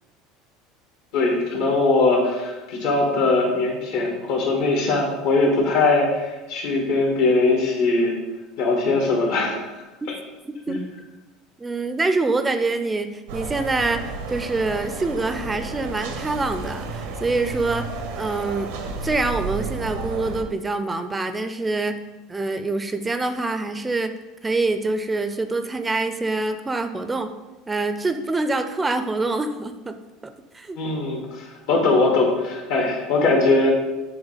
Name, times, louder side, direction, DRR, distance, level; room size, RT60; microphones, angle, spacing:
voice 1, 1.1-8.1 8.6-9.6 10.7-10.8 30.8-33.7, left 3 dB, 75° left, 0 dB, 1.8 m, -21 dB
voice 2, 10.5-10.8 11.6-17.9 18.2-18.7 19.0-22.0 22.3-24.1 24.4-27.3 27.7-30.0 30.5-30.8, right 3 dB, 15° right, 9 dB, 0.4 m, -25 dB
sound 1, 13.3-20.4, right 4 dB, 85° right, 0.8 m, -32 dB
7.9 x 3.3 x 4.1 m, 1.1 s
supercardioid pair, 110°, 0 cm